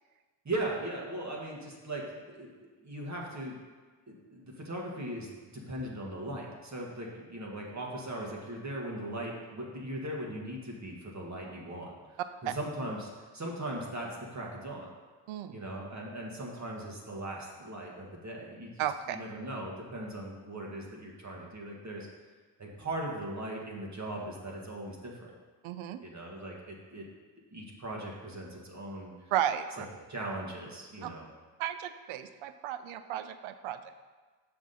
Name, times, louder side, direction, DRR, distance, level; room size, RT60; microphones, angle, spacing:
voice 1, 0.4-2.5 2.8-3.6 4.1-11.9 12.4-14.9 15.5-18.7 19.1-22.1 22.6-25.3 26.0-27.0 27.5-29.3 30.1-31.3, right 1 dB, 35° right, -1 dB, 1.8 m, -39 dB
voice 2, 15.3-15.6 18.8-19.2 25.6-26.0 29.3-29.9 31.0-31.1 31.6-33.9, right 11 dB, 80° right, 11 dB, 0.6 m, -34 dB
6.1 x 6.0 x 4.1 m, 1.4 s
supercardioid pair, 60°, 47 cm